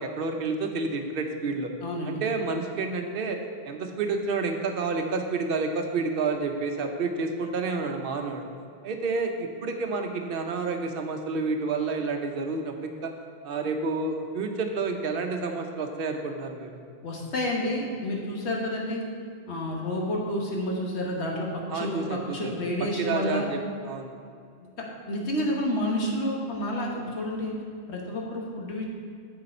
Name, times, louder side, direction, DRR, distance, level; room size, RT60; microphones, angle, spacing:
voice 1, 0.0-1.7 2.0-3.4 3.6-8.5 8.8-13.1 13.4-16.8 21.7-22.5 22.8-23.6 23.8-24.1, right 4 dB, 60° right, 4 dB, 0.9 m, -29 dB
voice 2, 1.8-2.2 17.0-19.0 19.5-21.5 21.7-23.4 25.1-27.5 27.9-28.8, left 1 dB, 80° left, -1 dB, 1.5 m, -29 dB
7.7 x 6.7 x 4.3 m, 2.3 s
omnidirectional pair, 1.1 m